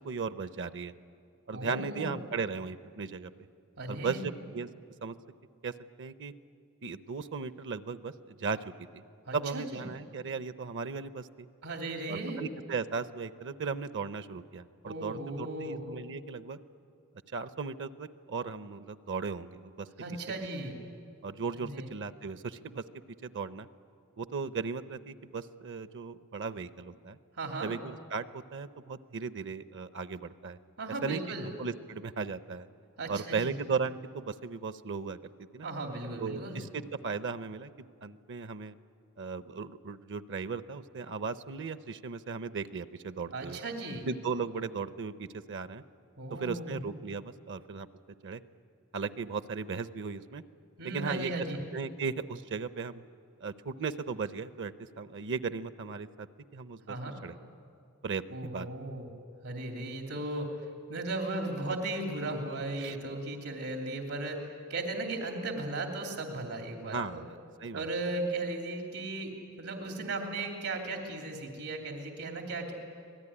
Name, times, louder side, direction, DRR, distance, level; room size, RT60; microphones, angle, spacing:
voice 1, 0.0-0.9 1.5-3.3 3.9-4.7 5.0-5.1 5.6-5.7 6.0-6.3 6.8-8.6 8.9-9.0 9.3-11.5 12.1-16.6 17.3-19.9 21.2-22.8 23.2-23.7 24.2-27.2 27.6-30.6 31.0-32.7 33.1-35.7 36.2-38.7 39.2-43.6 44.1-45.8 46.3-47.9 48.2-48.4 48.9-50.4 50.8-51.3 51.7-53.0 53.4-56.3 56.5-57.0 57.2-57.4 58.0-58.7 62.8-63.0 66.9-67.9, right 5 dB, 60° right, 13 dB, 0.7 m, -36 dB
voice 2, 1.5-2.1 3.8-4.2 9.3-9.8 11.6-12.4 14.8-15.8 20.0-20.8 21.5-21.9 27.4-27.7 30.8-31.5 33.0-33.5 35.6-36.6 43.3-44.0 46.2-46.8 50.8-51.6 56.9-57.2 58.3-59.1 59.4-60.5 60.9-64.4 64.7-67.2 67.7-69.3 69.6-72.7, right 2 dB, 85° right, 2 dB, 3.0 m, -36 dB
26.5 x 18.5 x 9.9 m, 2.3 s
head